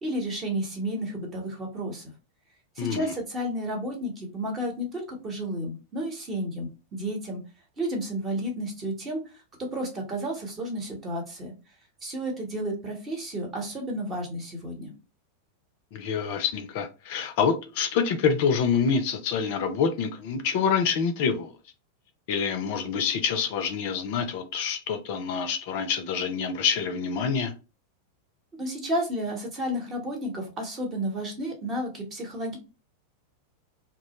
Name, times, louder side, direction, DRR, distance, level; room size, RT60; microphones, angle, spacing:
voice 1, 0.0-2.0 2.8-7.4 7.8-9.2 9.7-11.5 12.0-14.9 28.6-32.6, right 1 dB, 25° right, 0.9 m, -32 dB
voice 2, 2.8-3.1 15.9-21.5 22.3-27.5, left 6 dB, 50° left, 0.4 m, -26 dB
2.2 x 2.0 x 2.9 m
figure-of-eight pair, 90°, 0 cm